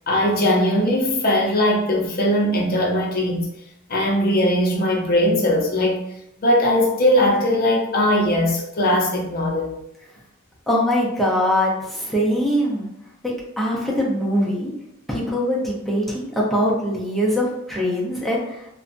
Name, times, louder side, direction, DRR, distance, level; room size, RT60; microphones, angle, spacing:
voice 1, 0.1-3.5 3.9-6.0 6.4-9.8, left 1 dB, 45° left, 0.6 m, -19 dB
voice 2, 10.7-12.9 13.6-14.7 15.1-18.7, equal, ahead, 0.6 m, -22 dB
2.6 x 2.2 x 2.6 m
head